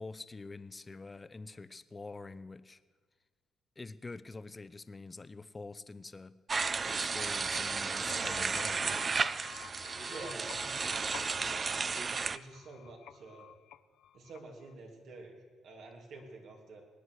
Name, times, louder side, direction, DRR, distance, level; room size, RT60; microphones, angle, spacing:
voice 1, 0.0-2.8 3.8-6.3 6.9-8.9, left 3 dB, 25° left, 14 dB, 0.7 m, -46 dB
sound 1, 6.5-12.4, right 4 dB, 35° right, 0.4 m, -33 dB
sound 2, 7.9-14.7, left 11 dB, 80° left, 0.5 m, -50 dB
voice 2, 10.1-11.7 12.3-13.5 14.1-16.8, right 3 dB, 75° right, 1 dB, 3.2 m, -49 dB
20.0 x 9.4 x 6.4 m, 1.5 s
cardioid pair, 90°, 0 cm